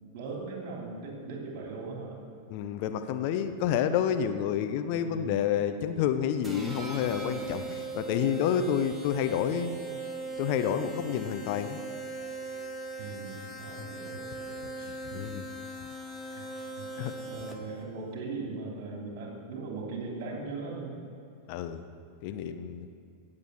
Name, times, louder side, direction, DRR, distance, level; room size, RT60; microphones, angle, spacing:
voice 1, 0.1-2.2 5.0-5.4 13.0-15.2 16.3-16.5 16.8-16.9 17.2-21.0, right 4 dB, 45° right, 0 dB, 3.2 m, -39 dB
voice 2, 2.5-9.7 10.4-11.8 13.8-13.9 15.1-15.4 17.0-17.1 21.5-21.8 22.2-22.9, left 9 dB, 45° left, 9 dB, 0.7 m, -29 dB
sound 1, 6.4-17.8, right 2 dB, 10° right, 1.5 m, -39 dB
17.5 x 7.5 x 6.3 m, 2.5 s
figure-of-eight pair, 90°, 0 cm